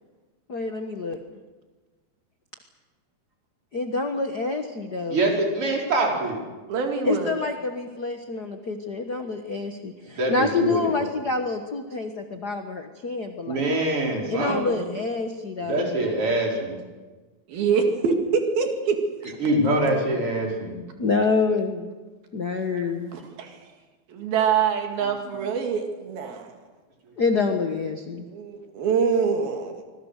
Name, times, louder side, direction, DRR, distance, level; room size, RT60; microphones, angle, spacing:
voice 1, 0.5-1.2 3.7-5.3 7.0-13.7 14.3-15.9 19.5-19.6 21.0-21.9 22.3-23.1 27.2-28.2, left 4 dB, 75° left, 5 dB, 0.9 m, -27 dB
voice 2, 5.1-6.4 10.2-11.0 13.5-14.8 15.6-16.7 19.4-20.8, right 2 dB, 35° right, -1 dB, 5.4 m, -24 dB
voice 3, 6.7-7.3 17.5-19.0 22.7-23.5 24.1-26.5 28.2-29.7, right 6 dB, 85° right, 3 dB, 4.1 m, -25 dB
26.0 x 22.0 x 6.6 m, 1.3 s
omnidirectional pair, 4.1 m